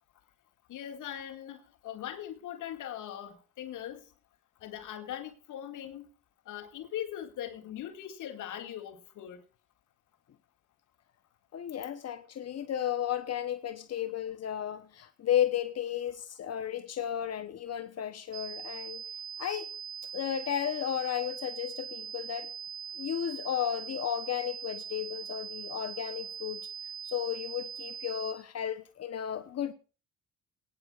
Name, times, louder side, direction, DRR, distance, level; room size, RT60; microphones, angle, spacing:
voice 1, 0.7-4.0 4.6-6.1 6.5-9.4, left 11 dB, 80° left, 2.3 m, -40 dB
voice 2, 11.5-19.0 19.4-19.8 20.1-22.5 23.0-26.7 27.0-29.7, left 10 dB, 55° left, 1.1 m, -33 dB
sound 1, 18.3-28.3, right 8 dB, 65° right, 4.7 m, -41 dB
21.5 x 10.0 x 2.5 m
cardioid pair, 90°, 30 cm